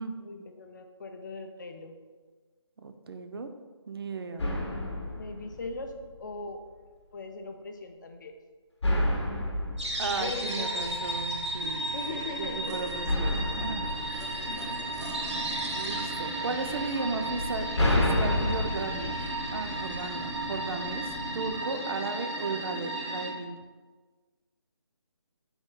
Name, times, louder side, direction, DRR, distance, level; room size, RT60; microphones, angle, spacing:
voice 1, 0.2-2.0 5.2-6.6 7.1-8.3 10.2-10.9 11.9-12.8 14.4-14.9, left 3 dB, 45° left, 6 dB, 0.4 m, -40 dB
voice 2, 2.8-3.5 3.9-4.5 10.0-11.9 12.4-13.9 15.7-21.0 21.3-23.6, right 3 dB, 55° right, 7 dB, 0.4 m, -35 dB
sound 1, 4.4-6.3 8.8-11.2 13.1-15.3 17.3-20.3, left 1 dB, 70° left, 0.8 m, -30 dB
sound 2, 9.8-23.3, right 1 dB, 80° right, 0.7 m, -34 dB
sound 3, 10.8-21.6, equal, ahead, 0.6 m, -45 dB
3.6 x 2.3 x 4.4 m, 1.4 s
figure-of-eight pair, 155°, 15 cm